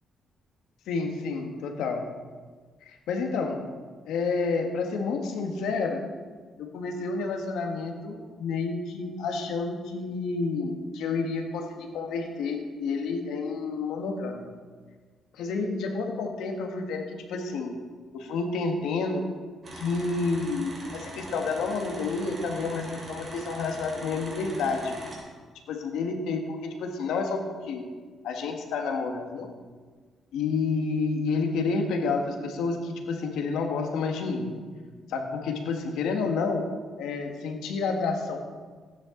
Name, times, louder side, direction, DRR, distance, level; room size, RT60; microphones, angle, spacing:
voice 1, 0.9-2.0 2.8-3.6 4.1-6.0 6.6-14.4 15.3-17.8 18.1-19.2 19.7-25.0 25.7-27.9 28.2-29.5 30.3-34.5 35.1-36.6 37.0-38.4, left 4 dB, 85° left, 3 dB, 1.6 m, -29 dB
sound 1, 19.6-25.2, right 1 dB, 35° right, 3.7 m, -41 dB
14.5 x 9.9 x 3.9 m, 1.5 s
cardioid pair, 90°, 0 cm